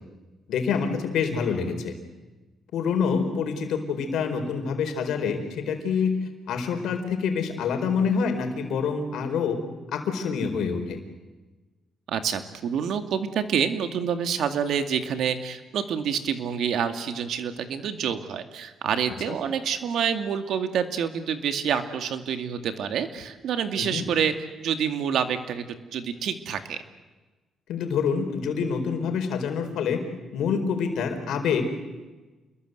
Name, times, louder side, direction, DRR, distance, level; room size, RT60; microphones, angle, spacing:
voice 1, 0.5-1.9 2.7-6.2 6.5-9.6 9.9-11.0 23.8-24.1 27.7-30.0 30.3-31.7, left 6 dB, 80° left, 6 dB, 4.4 m, -26 dB
voice 2, 12.1-25.7 25.9-26.8, right 7 dB, 75° right, 8 dB, 2.2 m, -27 dB
28.5 x 21.5 x 8.0 m, 1.2 s
cardioid pair, 90°, 0 cm